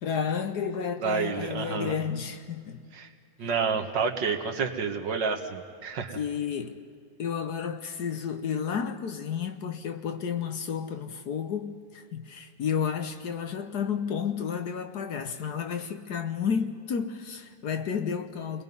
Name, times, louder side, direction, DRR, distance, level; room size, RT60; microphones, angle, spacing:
voice 1, 0.0-2.9 6.1-6.8 7.2-18.6, left 7 dB, 60° left, 1.4 m, -31 dB
voice 2, 1.0-1.9 2.9-3.1 3.4-6.2, right 5 dB, 65° right, 2.0 m, -29 dB
28.5 x 21.0 x 5.4 m
omnidirectional pair, 2.1 m